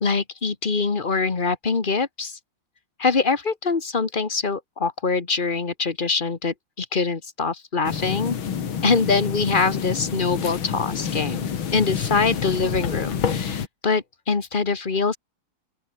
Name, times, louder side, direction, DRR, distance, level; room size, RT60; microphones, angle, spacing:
voice 1, 0.0-2.4 3.0-8.4 8.8-15.2, left 4 dB, 25° left, 1.4 m, -24 dB
sound 1, 7.8-13.7, left 7 dB, 70° left, 2.7 m, -28 dB
open air
omnidirectional pair, 2.4 m